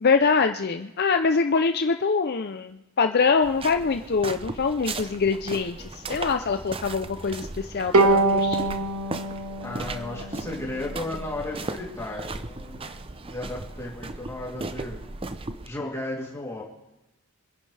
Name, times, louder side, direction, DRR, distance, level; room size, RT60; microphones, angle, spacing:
voice 1, 0.0-8.8, left 5 dB, 45° left, 7 dB, 0.5 m, -24 dB
sound 1, 3.4-15.7, right 3 dB, 25° right, 0.6 m, -37 dB
Bowed string instrument, 7.9-11.3, right 2 dB, 75° right, 1.6 m, -24 dB
voice 2, 9.6-12.8 13.2-15.0 15.6-16.6, left 1 dB, 10° left, -4 dB, 3.0 m, -34 dB
25.5 x 11.0 x 3.4 m, 0.97 s
head